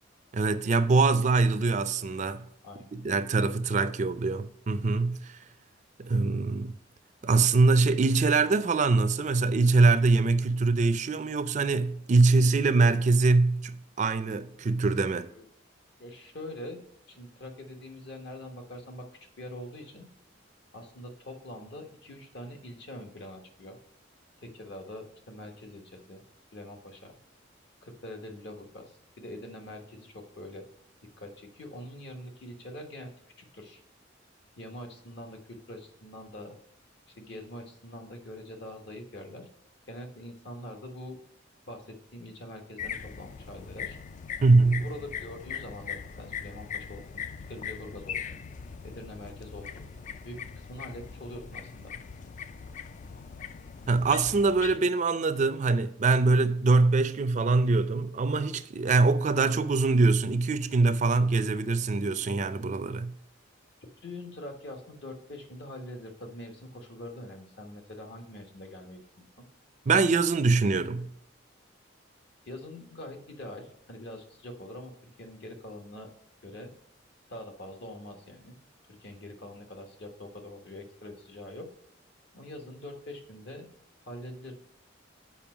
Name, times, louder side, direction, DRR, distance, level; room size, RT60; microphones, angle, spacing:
voice 1, 0.3-2.5 2.9-5.4 6.0-6.7 7.2-15.3 44.4-44.9 53.9-63.1 69.9-71.1, right 3 dB, 40° right, 0.4 m, -23 dB
voice 2, 2.6-3.1 15.3-15.5 16.0-16.8 17.1-20.1 20.7-23.8 24.4-26.2 26.5-27.2 27.8-30.6 31.2-33.1 33.4-33.8 34.6-36.5 37.2-39.5 39.9-41.2 41.7-44.0 44.6-47.2 47.5-48.4 48.8-49.9 50.2-51.9 64.0-69.3 72.5-76.1 76.4-76.7 77.3-78.5 78.9-81.7 82.3-83.7 84.0-84.5, left 1 dB, 60° left, 1.3 m, -44 dB
sound 1, 42.8-54.8, left 7 dB, 40° left, 0.3 m, -40 dB
7.1 x 5.2 x 6.0 m
head